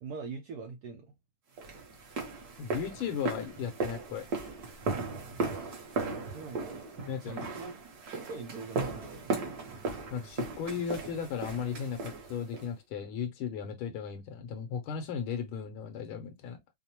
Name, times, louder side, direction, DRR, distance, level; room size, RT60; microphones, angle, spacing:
voice 1, 0.0-1.1 5.9-6.9 7.2-7.7 8.1-9.4, right 4 dB, 85° right, 0.8 m, -43 dB
sound 1, 1.6-12.7, right 3 dB, 55° right, 1.5 m, -37 dB
voice 2, 2.6-4.3 7.1-7.4 10.1-16.6, left 7 dB, 80° left, 1.5 m, -36 dB
4.9 x 2.0 x 2.8 m
omnidirectional pair, 2.3 m